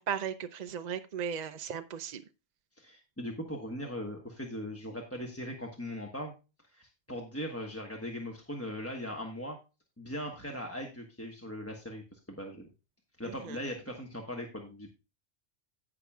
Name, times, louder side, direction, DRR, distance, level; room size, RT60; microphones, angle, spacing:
voice 1, 0.0-2.2 13.2-13.6, right 8 dB, 50° right, 9 dB, 0.5 m, -36 dB
voice 2, 2.8-6.3 6.7-9.6 10.0-12.7 13.2-14.9, equal, 15° left, 1 dB, 1.2 m, -39 dB
17.5 x 5.9 x 2.3 m, 0.29 s
omnidirectional pair, 1.2 m